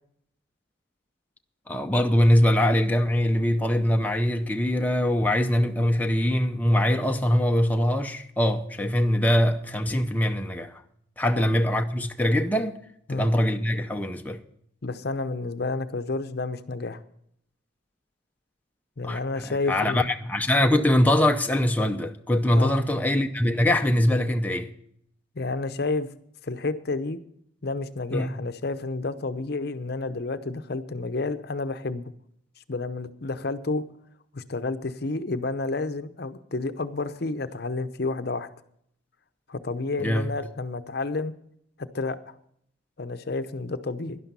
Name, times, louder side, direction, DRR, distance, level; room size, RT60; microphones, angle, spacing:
voice 1, 1.7-10.8 11.2-12.8 13.1-14.4 19.0-19.2 19.7-24.7 28.1-28.3 40.0-40.3, left 1 dB, 10° left, 0.6 m, -23 dB
voice 2, 14.8-17.0 19.0-20.0 22.5-22.7 25.3-26.1 26.4-27.2 27.6-32.1 32.7-33.8 34.3-38.5 39.5-41.3 41.8-42.3 43.0-44.2, left 3 dB, 55° left, 0.7 m, -30 dB
12.0 x 11.0 x 5.4 m
head